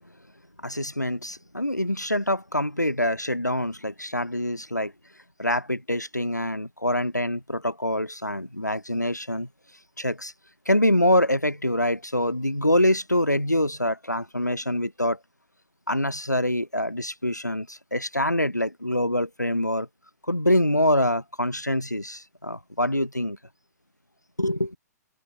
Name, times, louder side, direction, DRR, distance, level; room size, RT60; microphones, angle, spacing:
voice 1, 0.6-4.9 5.4-9.5 10.0-10.3 10.7-15.2 15.9-19.9 20.3-23.4 24.4-24.8, left 1 dB, 90° left, 2.3 m, -25 dB
figure-of-eight pair, 120°, 9 cm